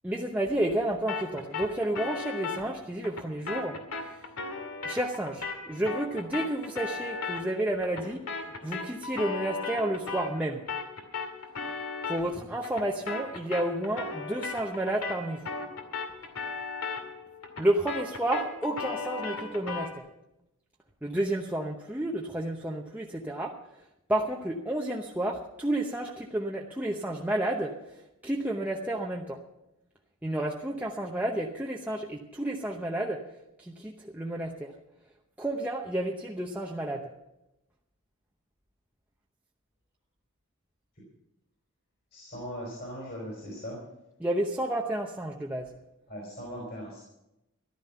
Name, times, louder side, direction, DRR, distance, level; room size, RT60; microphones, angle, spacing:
voice 1, 0.0-4.2 4.8-8.2 8.6-10.6 12.1-15.4 17.6-20.1 21.0-23.6 24.1-29.4 30.2-33.2 33.6-34.7 35.4-37.1 44.2-45.7, right 1 dB, 5° right, -1 dB, 0.8 m, -31 dB
sound 1, 1.1-10.4 10.7-20.0, left 4 dB, 80° left, 2.3 m, -37 dB
voice 2, 42.1-43.8 46.1-47.0, equal, 45° left, -3 dB, 4.5 m, -39 dB
14.0 x 12.0 x 5.7 m, 0.89 s
head